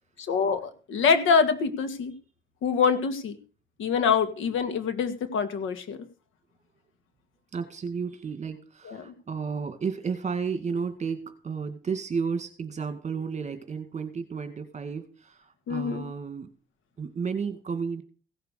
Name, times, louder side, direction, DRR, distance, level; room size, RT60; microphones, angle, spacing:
voice 1, 0.2-2.1 2.6-3.4 3.8-6.1 8.9-9.1 15.7-16.0, left 6 dB, 80° left, 10 dB, 1.9 m, -25 dB
voice 2, 7.5-16.5 17.0-18.0, right 5 dB, 35° right, 8 dB, 2.0 m, -32 dB
16.5 x 6.8 x 6.5 m, 0.38 s
cardioid pair, 90°, 20 cm